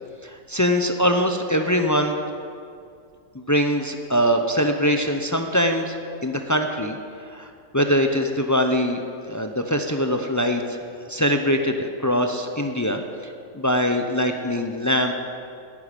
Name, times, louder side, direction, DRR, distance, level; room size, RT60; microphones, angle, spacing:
voice 1, 0.2-2.2 3.3-5.9 6.2-7.0 7.3-15.1, equal, 25° left, 4 dB, 0.4 m, -23 dB
10.5 x 10.0 x 9.9 m, 2.4 s
omnidirectional pair, 1.6 m